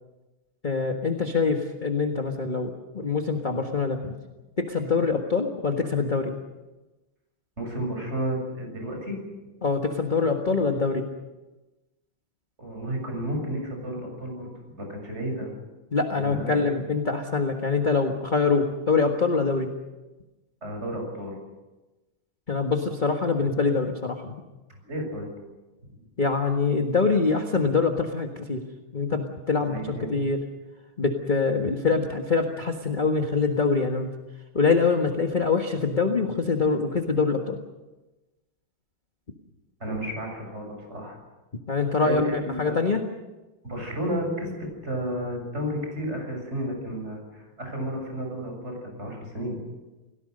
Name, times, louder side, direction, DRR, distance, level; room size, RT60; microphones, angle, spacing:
voice 1, 0.6-4.1 4.6-6.3 9.6-11.0 15.9-19.7 22.5-24.3 26.2-28.6 28.9-30.4 31.0-34.1 34.5-37.6 41.7-43.0, left 4 dB, 25° left, 3 dB, 1.5 m, -24 dB
voice 2, 7.6-9.2 12.6-14.5 14.8-15.5 16.1-16.6 20.6-21.4 24.8-25.3 25.8-26.0 29.6-30.1 39.8-41.2 42.0-42.7 43.6-49.6, equal, 30° right, 2 dB, 7.4 m, -32 dB
29.5 x 18.0 x 6.7 m, 1.1 s
omnidirectional pair, 2.3 m